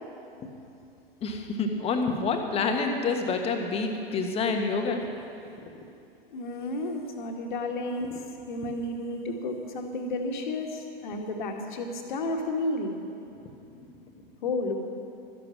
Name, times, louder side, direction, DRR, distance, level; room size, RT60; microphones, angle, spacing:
voice 1, 1.2-5.1 5.6-5.7 8.1-8.2 13.7-13.9, left 4 dB, 20° left, 4 dB, 1.3 m, -28 dB
voice 2, 6.3-8.1 8.5-12.9 14.4-14.8, left 2 dB, 55° left, 3 dB, 1.8 m, -32 dB
13.5 x 11.0 x 6.3 m, 2.6 s
figure-of-eight pair, 100°, 29 cm